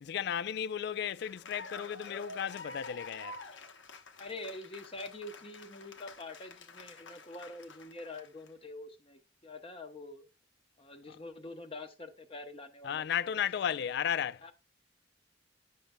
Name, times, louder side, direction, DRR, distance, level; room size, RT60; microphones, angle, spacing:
voice 1, 0.0-3.4 11.1-11.2 12.8-14.4, left 8 dB, 60° left, 0.3 m, -34 dB
Cheering / Applause, 0.9-8.5, left 3 dB, 75° left, 1.0 m, -49 dB
voice 2, 4.2-10.3 10.8-13.5 14.4-14.5, left 2 dB, 30° left, 0.7 m, -46 dB
10.0 x 6.6 x 2.2 m
head